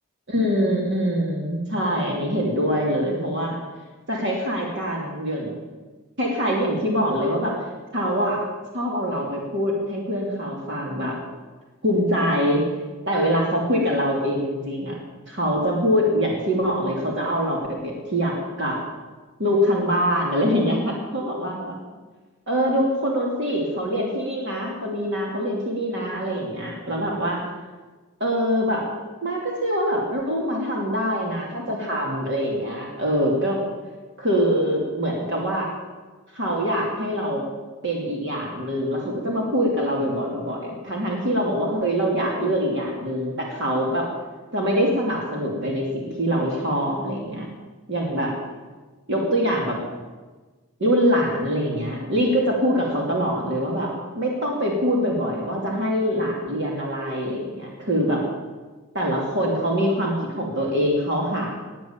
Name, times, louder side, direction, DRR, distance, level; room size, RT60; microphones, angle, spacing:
voice 1, 0.3-3.6 4.1-5.6 6.2-7.5 7.9-8.4 8.7-11.2 11.8-12.6 13.1-15.0 15.3-18.8 19.4-21.7 22.5-27.4 28.2-28.8 29.2-33.6 34.2-35.7 36.3-37.4 37.8-44.1 44.5-47.5 47.9-48.3 49.1-49.8 50.8-58.2 58.9-61.5, equal, 55° right, -2 dB, 2.8 m, -24 dB
19.5 x 9.3 x 7.3 m, 1.3 s
head